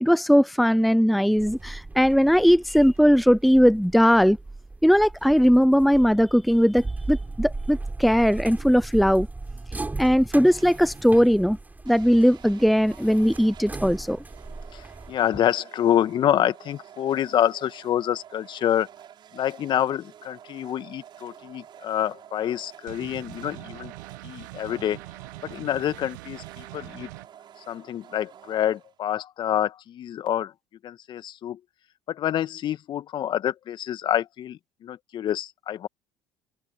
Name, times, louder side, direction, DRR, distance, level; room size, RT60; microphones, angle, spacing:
voice 1, 0.0-4.4 4.8-9.3 10.0-11.6 11.9-14.2, equal, ahead, 0.7 m, -19 dB
sound 1, 1.4-15.2, right 3 dB, 15° right, 5.2 m, -37 dB
sound 2, 10.4-11.1 11.9-29.2, right 10 dB, 50° right, 5.8 m, -49 dB
voice 2, 14.7-18.9 19.3-23.9 24.2-25.0 25.4-27.1 27.7-30.5 30.8-31.6 32.1-35.9, left 11 dB, 50° left, 2.1 m, -27 dB
sound 3, 22.9-27.3, right 22 dB, 75° right, 1.6 m, -42 dB
hypercardioid pair, 60°, 10 cm